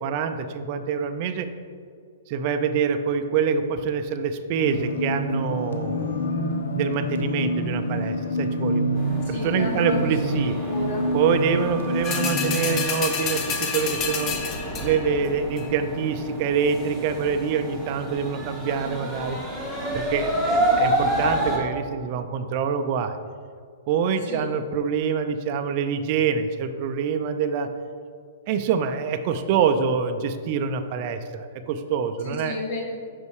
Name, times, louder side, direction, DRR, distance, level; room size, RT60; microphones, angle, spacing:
voice 1, 0.0-1.5 2.3-6.3 6.7-9.0 9.3-10.6 11.1-14.3 14.8-19.4 19.9-23.2 23.9-27.7 28.5-32.6, right 6 dB, 45° right, 7 dB, 0.5 m, -25 dB
sound 1, 4.6-12.8, equal, 80° left, 0.7 m, -27 dB
sound 2, 8.9-21.6, right 1 dB, 5° left, 1.5 m, -29 dB
voice 2, 9.3-10.1 10.6-11.1 11.5-11.8 24.3-24.5 32.2-32.8, left 2 dB, 60° left, -1 dB, 1.8 m, -32 dB
sound 3, 12.0-15.1 15.6-15.7, left 6 dB, 30° left, 0.7 m, -29 dB
5.4 x 5.3 x 4.8 m, 2.1 s
hypercardioid pair, 140°, 0 cm